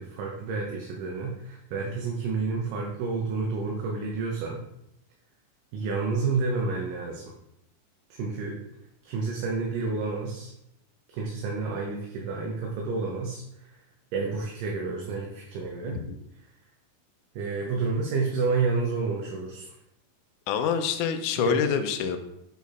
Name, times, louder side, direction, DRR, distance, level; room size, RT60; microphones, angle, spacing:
voice 1, 0.0-4.6 5.7-7.3 8.2-8.6 9.1-10.5 11.1-13.8 14.1-16.0 17.4-19.7 21.4-21.6, right 4 dB, 75° right, -1 dB, 2.3 m, -30 dB
voice 2, 20.5-22.2, left 7 dB, 80° left, 7 dB, 1.8 m, -27 dB
8.1 x 4.2 x 4.1 m, 0.81 s
omnidirectional pair, 4.1 m